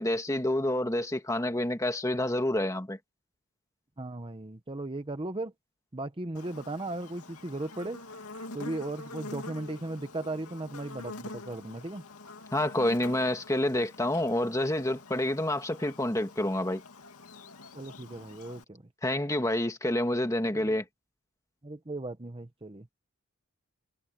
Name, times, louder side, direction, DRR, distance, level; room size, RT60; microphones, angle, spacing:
voice 1, 0.0-3.0 12.5-16.8 19.0-20.8, left 1 dB, 15° left, 1.9 m, -28 dB
voice 2, 4.0-5.5 5.9-8.0 8.5-12.0 17.7-18.8 20.5-20.8 21.6-22.9, right 2 dB, 25° right, 1.0 m, -37 dB
Buzz, 6.3-18.6, left 2 dB, 85° left, 2.4 m, -46 dB
head